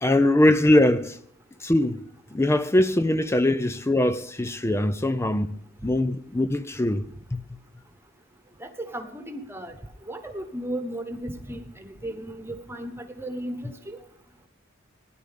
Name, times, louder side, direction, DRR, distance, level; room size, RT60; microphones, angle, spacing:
voice 1, 0.0-1.2 1.6-2.0 2.3-7.0 7.3-7.4, left 1 dB, 10° left, 0.4 m, -22 dB
voice 2, 8.6-9.8 10.1-14.0, right 1 dB, 10° right, 1.2 m, -35 dB
17.0 x 10.5 x 3.6 m
head